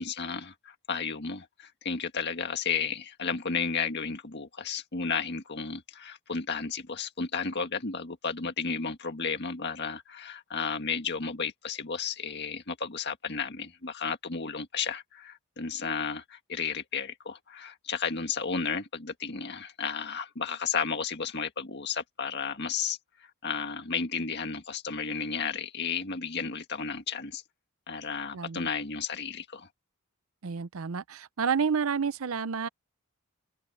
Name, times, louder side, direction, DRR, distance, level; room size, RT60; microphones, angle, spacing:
voice 1, 0.0-27.4 27.9-29.7, left 5 dB, 50° left, 1.8 m, -33 dB
voice 2, 28.3-28.7 30.4-32.7, right 6 dB, 70° right, 0.6 m, -30 dB
open air
head